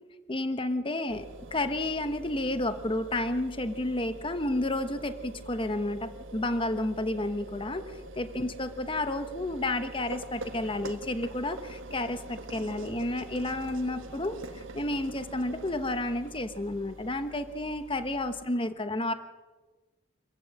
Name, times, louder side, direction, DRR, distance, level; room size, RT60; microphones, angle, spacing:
voice 1, 0.3-19.1, left 1 dB, 25° left, 10 dB, 1.1 m, -31 dB
sound 1, 1.1-18.4, right 2 dB, 80° right, 1.6 m, -44 dB
26.5 x 15.0 x 7.7 m, 1.3 s
head